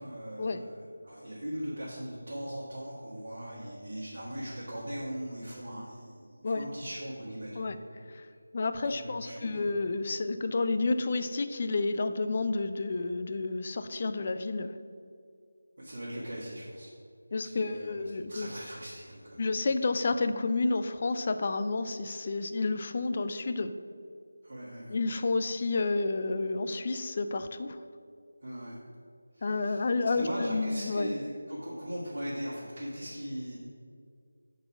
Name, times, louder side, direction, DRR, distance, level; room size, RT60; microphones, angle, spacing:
voice 1, 0.0-8.1 8.8-9.7 15.8-16.9 17.4-19.4 24.4-24.9 28.4-28.8 29.3-29.9 30.1-33.6, equal, 55° right, -9 dB, 1.6 m, -40 dB
voice 2, 8.5-14.7 17.3-18.5 19.4-23.7 24.9-27.8 29.4-31.1, left 3 dB, 35° left, 9 dB, 0.3 m, -30 dB
6.6 x 4.1 x 5.8 m, 2.3 s
figure-of-eight pair, 160°, 0 cm